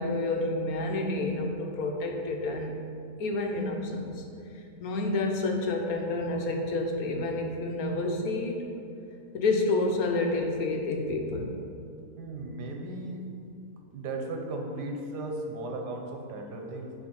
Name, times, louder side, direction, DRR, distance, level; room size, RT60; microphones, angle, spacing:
voice 1, 0.0-2.7 3.2-4.2 4.8-8.6 9.3-11.5, left 2 dB, 65° left, 2 dB, 1.2 m, -29 dB
voice 2, 12.2-13.2 13.9-16.9, right 2 dB, 85° right, 2 dB, 1.4 m, -36 dB
9.6 x 3.2 x 5.3 m, 2.5 s
omnidirectional pair, 1.7 m